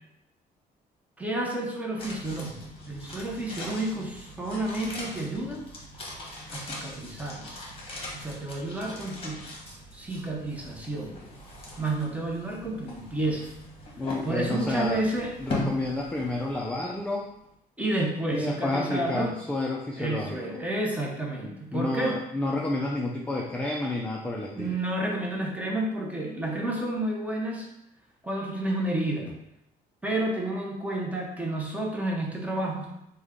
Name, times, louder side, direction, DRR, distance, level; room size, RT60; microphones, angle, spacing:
voice 1, 1.2-5.6 6.5-7.5 8.1-9.4 9.9-11.1 11.8-13.6 14.2-15.4 17.8-19.3 20.0-22.2 24.6-27.7 28.2-29.3 30.0-32.9, right 1 dB, 10° right, -1 dB, 0.7 m, -30 dB
sound 1, 2.0-17.2 17.4-17.5, left 2 dB, 35° left, 1.0 m, -40 dB
voice 2, 14.0-15.0 15.4-17.3 18.3-20.6 21.7-24.8, left 2 dB, 5° left, -1 dB, 0.3 m, -30 dB
3.4 x 2.2 x 3.6 m, 0.82 s
cardioid pair, 110°, 17 cm